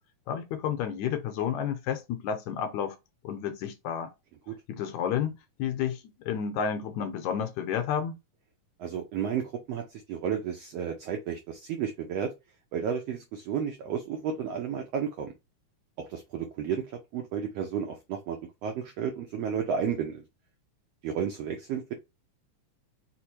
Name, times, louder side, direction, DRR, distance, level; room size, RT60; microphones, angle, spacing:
voice 1, 0.3-3.0 3.2-4.1 4.7-6.0 6.3-8.2, left 8 dB, 75° left, 1.9 m, -31 dB
voice 2, 8.8-12.3 12.7-15.3 16.0-20.2 21.0-21.9, right 7 dB, 85° right, 1.4 m, -32 dB
5.1 x 2.1 x 4.4 m
omnidirectional pair, 3.6 m